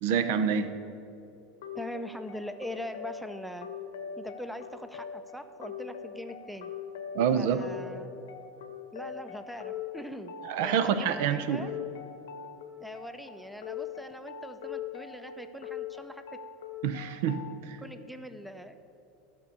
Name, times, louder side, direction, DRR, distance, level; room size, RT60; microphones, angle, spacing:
voice 1, 0.0-0.7 7.1-7.6 10.4-11.6 16.8-17.8, right 7 dB, 70° right, 10 dB, 0.8 m, -27 dB
sound 1, 1.6-17.6, left 8 dB, 85° left, 1.0 m, -42 dB
voice 2, 1.7-3.7 4.2-6.7 7.3-8.1 8.9-10.3 10.6-11.7 12.8-16.2 17.8-18.8, equal, ahead, 9 dB, 0.6 m, -41 dB
12.0 x 5.5 x 8.4 m, 2.8 s
supercardioid pair, 135°, 0 cm